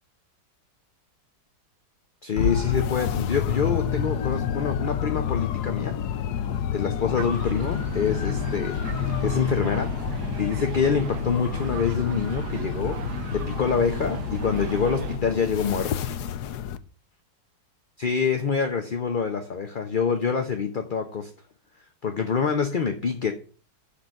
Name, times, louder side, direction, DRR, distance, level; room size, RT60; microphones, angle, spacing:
voice 1, 2.2-6.0 6.7-8.8 9.2-10.0 10.4-13.0 13.3-16.0 18.0-21.3 22.0-23.3, left 6 dB, 40° left, 0.7 m, -26 dB
sound 1, 2.4-16.8, left 9 dB, 70° left, 1.2 m, -29 dB
sound 2, 7.2-15.2, right 7 dB, 70° right, 1.4 m, -36 dB
11.5 x 3.9 x 7.8 m
omnidirectional pair, 1.9 m